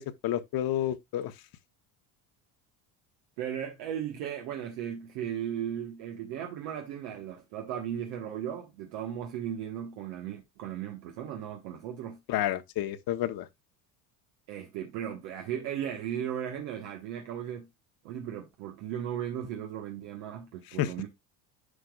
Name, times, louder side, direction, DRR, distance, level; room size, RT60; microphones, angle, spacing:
voice 1, 0.0-1.3 12.3-13.5 20.8-20.9, left 12 dB, 55° left, 1.0 m, -30 dB
voice 2, 3.4-12.2 14.5-17.7 18.0-21.1, right 9 dB, 85° right, 1.3 m, -36 dB
9.9 x 5.2 x 2.3 m
supercardioid pair, 95°, 42 cm